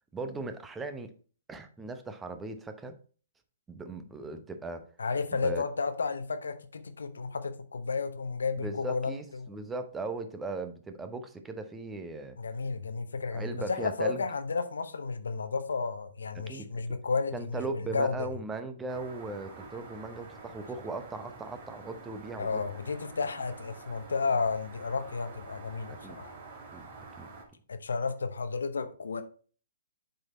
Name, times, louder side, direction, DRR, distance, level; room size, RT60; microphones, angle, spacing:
voice 1, 0.1-1.1 1.5-3.0 3.7-4.9 5.4-5.6 8.6-12.4 13.3-14.2 16.5-16.8 17.3-22.6 25.9-26.2 26.7-26.9 27.2-27.3, right 3 dB, 10° right, 0.8 m, -38 dB
voice 2, 5.0-9.5 12.4-18.3 22.4-26.3 27.7-29.2, left 4 dB, 75° left, 0.9 m, -32 dB
sound 1, 18.9-27.5, right 3 dB, 40° right, 1.8 m, -48 dB
7.6 x 4.3 x 4.2 m
figure-of-eight pair, 125°, 0 cm